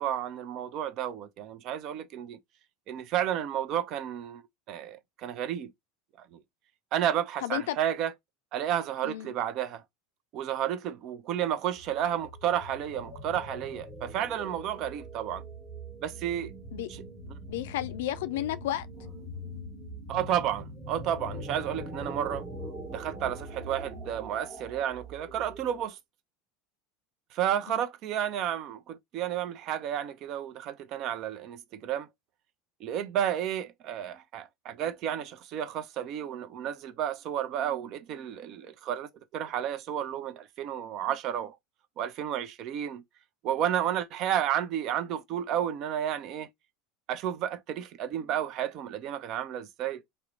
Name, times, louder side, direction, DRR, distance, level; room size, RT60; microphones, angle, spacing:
voice 1, 0.0-2.4 2.9-4.4 4.7-5.7 6.2-6.4 6.9-8.1 8.5-9.8 10.3-15.4 16.0-16.5 16.9-17.0 20.1-22.4 22.9-26.0 27.3-32.1 32.8-41.6 42.0-43.0 43.4-46.5 47.1-50.0, right 10 dB, 50° right, 0.4 m, -32 dB
voice 2, 7.4-7.8 9.0-9.3 16.7-16.9 17.5-18.9 27.7-27.8, left 13 dB, 70° left, 0.3 m, -32 dB
sound 1, 11.8-25.9, right 1 dB, 20° right, 1.1 m, -42 dB
2.8 x 2.0 x 2.4 m
hypercardioid pair, 80°, 0 cm